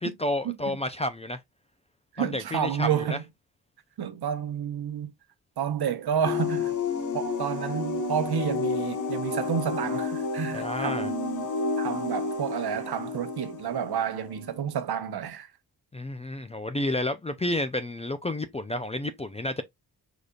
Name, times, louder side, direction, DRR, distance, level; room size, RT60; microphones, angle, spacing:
voice 1, 0.0-1.4 2.2-3.2 10.5-11.1 15.9-19.6, left 1 dB, 15° left, 0.4 m, -30 dB
voice 2, 2.1-3.2 4.0-5.1 5.6-6.7 7.1-11.5 11.8-15.5, right 8 dB, 70° right, 1.0 m, -30 dB
sound 1, 6.2-14.6, left 4 dB, 50° left, 1.1 m, -31 dB
5.0 x 4.0 x 2.3 m
wide cardioid pair, 120°, 40 cm